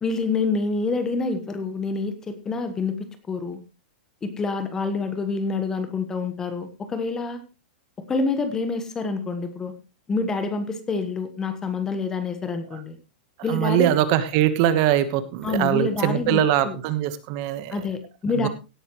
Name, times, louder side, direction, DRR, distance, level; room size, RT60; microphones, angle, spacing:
voice 1, 0.0-3.0 3.3-3.6 4.2-7.4 8.1-9.7 10.1-13.0 13.4-13.9 15.4-16.8 17.7-18.5, left 4 dB, 10° left, 10 dB, 1.2 m, -27 dB
voice 2, 13.5-17.7 18.4-18.5, right 11 dB, 30° right, 12 dB, 1.2 m, -22 dB
17.5 x 10.5 x 3.1 m, 0.28 s
supercardioid pair, 175°, 5 cm